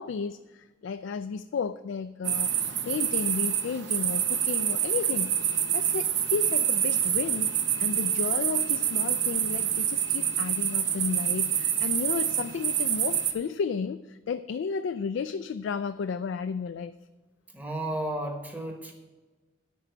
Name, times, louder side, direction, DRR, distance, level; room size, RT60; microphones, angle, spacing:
voice 1, 0.0-7.5 7.8-16.9, left 6 dB, 75° left, 11 dB, 0.3 m, -33 dB
sound 1, 2.2-13.3, right 9 dB, 70° right, 0.8 m, -27 dB
voice 2, 17.5-18.9, right 1 dB, 10° right, 3 dB, 1.1 m, -33 dB
9.0 x 5.5 x 7.9 m, 1.2 s
head